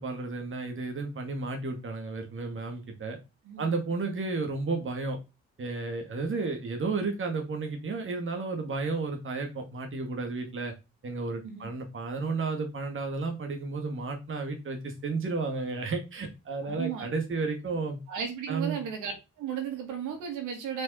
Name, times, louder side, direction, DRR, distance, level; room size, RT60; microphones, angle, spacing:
voice 1, 0.0-3.2 3.6-5.2 5.6-10.7 11.0-18.0 18.5-18.8, right 3 dB, 40° right, 3 dB, 2.1 m, -32 dB
voice 2, 3.4-4.2 11.4-11.7 16.6-17.1 18.1-19.1 19.4-20.8, right 7 dB, 90° right, 3 dB, 2.4 m, -35 dB
5.8 x 5.2 x 4.3 m, 0.27 s
cardioid pair, 90°, 30 cm